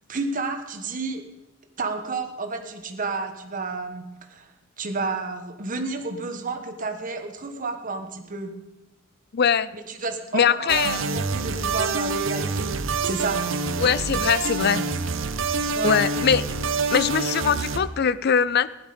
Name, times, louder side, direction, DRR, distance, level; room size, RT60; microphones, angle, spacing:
voice 1, 0.1-1.2 1.8-4.5 4.8-8.5 9.7-12.7 13.0-13.4 15.7-16.0, right 3 dB, 40° right, 5 dB, 1.3 m, -31 dB
voice 2, 9.3-9.7 10.3-11.1 13.8-14.8 15.6-16.4 16.9-18.7, left 7 dB, 55° left, 17 dB, 0.5 m, -22 dB
sound 1, 10.7-17.8, right 4 dB, 75° right, 0.8 m, -26 dB
15.5 x 11.0 x 5.2 m, 1.0 s
head